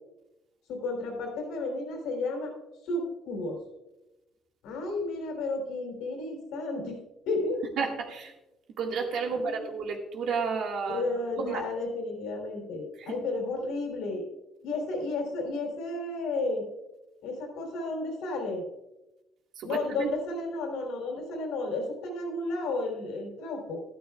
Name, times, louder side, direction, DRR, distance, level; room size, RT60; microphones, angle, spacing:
voice 1, 0.7-2.5 2.8-3.6 4.6-7.0 7.3-7.6 9.3-9.7 10.9-14.3 14.6-16.6 17.2-18.7 19.6-23.8, left 2 dB, 90° left, 2 dB, 3.3 m, -32 dB
voice 2, 7.8-8.3 8.8-11.6 13.0-13.2 19.6-20.1, right 5 dB, 65° right, 2 dB, 1.8 m, -32 dB
13.5 x 12.5 x 2.4 m, 0.97 s
cardioid pair, 140°, 0 cm